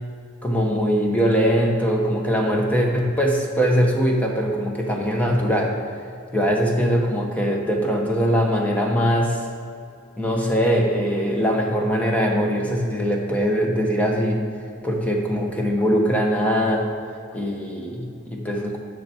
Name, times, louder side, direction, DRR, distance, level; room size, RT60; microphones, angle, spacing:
voice 1, 0.4-5.8 6.3-9.5 10.2-14.4 14.8-16.9 17.3-18.8, equal, 5° left, 0 dB, 1.1 m, -21 dB
10.5 x 6.8 x 4.5 m, 2.4 s
head